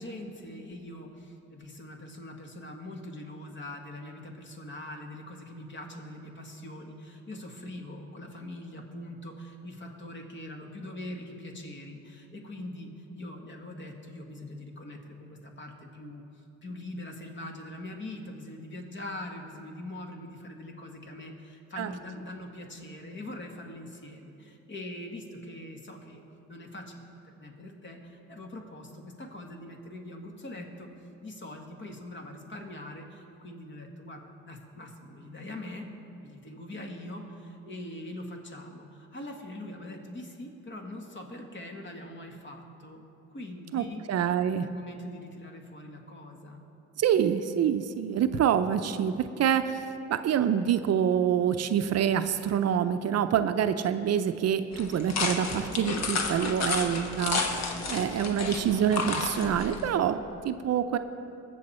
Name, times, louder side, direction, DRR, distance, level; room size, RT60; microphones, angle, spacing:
voice 1, 0.0-16.2 16.6-26.2 26.5-30.9 31.2-35.9 36.2-43.1 43.3-44.0 44.4-46.6, left 1 dB, 40° left, 2 dB, 1.8 m, -42 dB
voice 2, 43.7-44.7 47.0-49.8 50.1-57.5 57.9-60.2 60.4-61.0, right 9 dB, 55° right, 10 dB, 0.6 m, -26 dB
sound 1, 54.7-59.9, left 4 dB, 60° left, 1.2 m, -31 dB
21.0 x 7.0 x 4.3 m, 2.8 s
cardioid pair, 90°, 30 cm